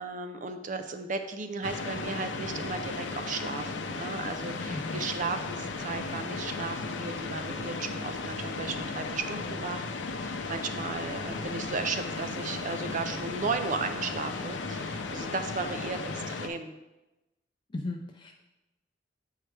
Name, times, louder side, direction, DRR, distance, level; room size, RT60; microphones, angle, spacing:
voice 1, 0.0-9.9 10.2-16.8, right 4 dB, 45° right, 8 dB, 0.5 m, -35 dB
sound 1, 1.6-16.5, left 3 dB, 85° left, 0.6 m, -35 dB
voice 2, 4.7-5.0 17.7-18.4, left 2 dB, 25° left, 1 dB, 0.4 m, -36 dB
7.7 x 4.7 x 3.3 m, 1.0 s
head